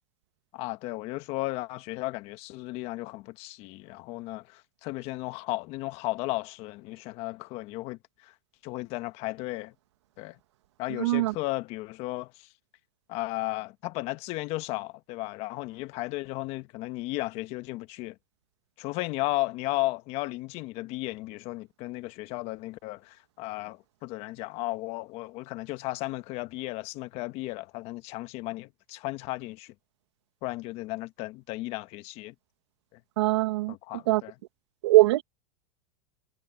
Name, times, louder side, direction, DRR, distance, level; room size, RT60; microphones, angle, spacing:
voice 1, 0.5-8.3 8.6-9.7 10.2-10.4 10.8-12.5 13.1-18.2 18.8-29.7 30.4-32.3 32.9-33.0 33.7-34.3, left 19 dB, 45° left, 1.4 m, -35 dB
voice 2, 11.0-11.3 33.2-33.7 34.1-34.2 34.8-35.2, right 19 dB, 75° right, 1.4 m, -21 dB
supercardioid pair, 140°, 15 cm